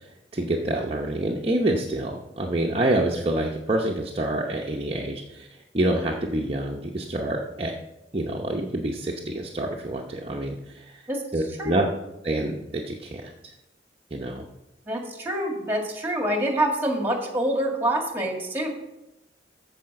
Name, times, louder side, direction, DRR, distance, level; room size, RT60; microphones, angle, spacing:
voice 1, 0.3-5.5 5.7-7.7 8.1-11.0 11.3-11.8 12.2-13.3 14.1-14.4, right 1 dB, 30° right, -1 dB, 0.8 m, -27 dB
voice 2, 14.9-18.7, right 1 dB, 10° right, 2 dB, 1.8 m, -26 dB
14.0 x 5.0 x 5.9 m, 0.95 s
head